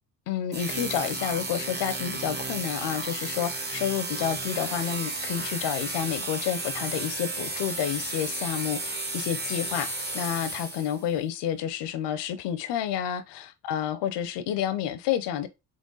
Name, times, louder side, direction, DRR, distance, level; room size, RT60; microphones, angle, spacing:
voice 1, 0.3-9.9 10.1-15.5, left 9 dB, 80° left, 0.7 m, -30 dB
sound 1, 0.5-11.1, right 2 dB, 25° right, 1.1 m, -33 dB
3.8 x 3.5 x 3.8 m
supercardioid pair, 65°, 41 cm